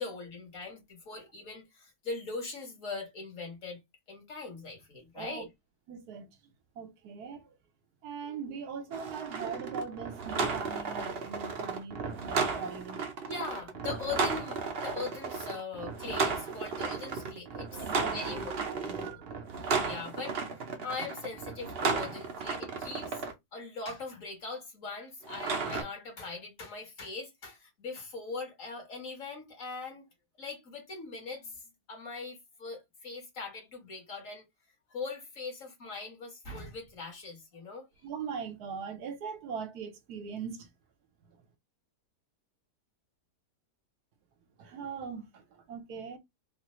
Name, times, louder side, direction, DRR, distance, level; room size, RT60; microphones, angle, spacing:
voice 1, 0.0-3.8 4.1-5.5 13.2-18.4 19.1-19.2 19.8-20.5 20.8-23.2 23.5-30.1 30.4-31.6 31.9-34.4 34.9-37.9, left 4 dB, 55° left, 1.7 m, -41 dB
voice 2, 5.9-7.6 8.0-13.2 17.7-19.3 38.0-40.7 41.3-41.4 44.6-46.2, right 6 dB, 75° right, 1.2 m, -41 dB
sound 1, 8.9-23.3 25.2-25.8, right 4 dB, 55° right, 0.7 m, -34 dB
3.7 x 2.5 x 3.0 m
omnidirectional pair, 1.7 m